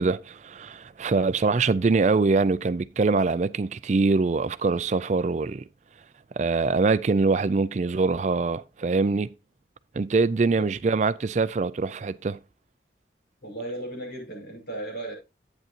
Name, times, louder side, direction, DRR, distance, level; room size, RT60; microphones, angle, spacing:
voice 1, 0.0-5.6 6.4-9.3 9.9-12.4, right 4 dB, 40° right, 0.4 m, -23 dB
voice 2, 13.4-15.1, right 1 dB, 60° left, 5.7 m, -35 dB
10.5 x 8.9 x 2.7 m
head